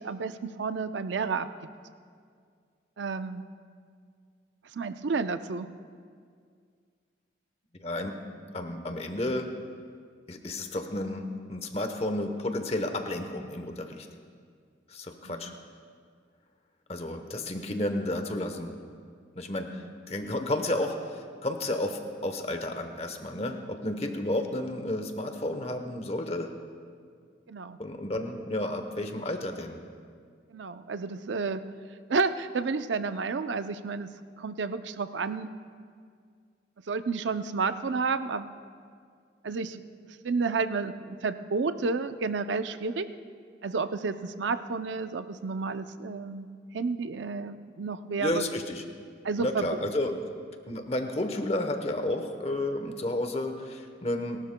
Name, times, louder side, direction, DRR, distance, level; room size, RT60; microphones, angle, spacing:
voice 1, 0.0-1.5 3.0-3.4 4.7-5.7 15.2-15.5 19.7-19.9 27.5-27.8 30.5-31.6 32.1-34.1 34.4-35.5 36.9-38.5 39.4-39.9 40.2-43.1 43.6-46.5 46.7-48.5 49.2-49.7, right 4 dB, 85° right, 10 dB, 0.5 m, -31 dB
voice 2, 7.8-8.1 8.5-9.5 10.3-14.1 14.9-15.5 16.9-18.7 19.4-26.5 27.8-29.8 48.2-48.8 49.4-50.2 50.7-54.4, left 1 dB, 35° left, 6 dB, 0.9 m, -32 dB
30.0 x 12.5 x 2.2 m, 2.1 s
head